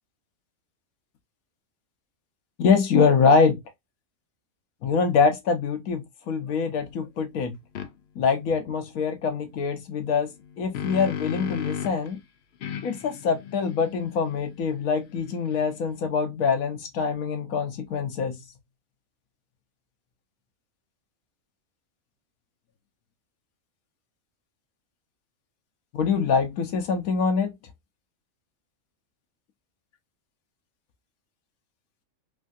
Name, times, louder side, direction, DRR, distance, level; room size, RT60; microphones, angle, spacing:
voice 1, 2.6-3.6 4.8-7.6 8.2-12.2 12.8-18.4 25.9-27.5, left 5 dB, 85° left, 1.2 m, -24 dB
sound 1, 7.7-7.9 10.3-12.1 12.6-15.9, left 8 dB, 65° left, 0.7 m, -35 dB
3.4 x 2.6 x 2.3 m
omnidirectional pair, 1.5 m